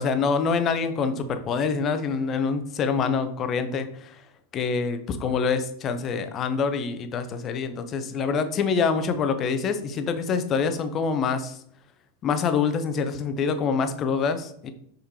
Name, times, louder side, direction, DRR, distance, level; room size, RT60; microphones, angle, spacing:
voice 1, 0.0-4.2 4.5-11.6 12.2-14.7, left 5 dB, 30° left, 9 dB, 0.7 m, -26 dB
6.5 x 5.2 x 2.9 m, 0.67 s
figure-of-eight pair, 90°, 0 cm